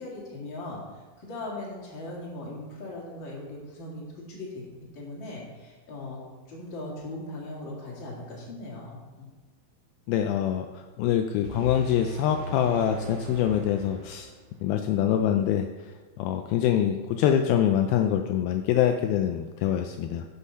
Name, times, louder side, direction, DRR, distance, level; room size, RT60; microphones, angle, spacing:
voice 1, 0.0-4.7 4.9-6.2 6.5-9.3, left 2 dB, 35° left, -3 dB, 2.2 m, -39 dB
voice 2, 10.1-14.3 14.6-20.3, left 10 dB, 85° left, 6 dB, 2.1 m, -25 dB
sound 1, 11.4-14.5, right 2 dB, 85° right, 3.0 m, -38 dB
8.5 x 6.4 x 5.6 m, 1.3 s
omnidirectional pair, 4.8 m